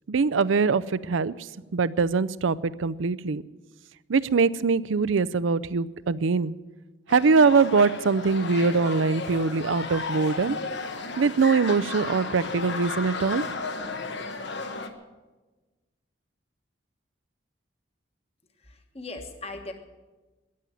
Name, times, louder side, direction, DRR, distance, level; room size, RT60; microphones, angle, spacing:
voice 1, 0.1-1.3 1.7-3.4 4.1-6.5 7.1-10.6 11.2-13.4, right 4 dB, 80° right, 16 dB, 0.5 m, -23 dB
sound 1, 7.1-14.9, left 3 dB, 65° left, 1.2 m, -34 dB
voice 2, 18.6-19.7, left 2 dB, 30° left, 5 dB, 1.4 m, -39 dB
14.0 x 10.5 x 9.3 m, 1.2 s
head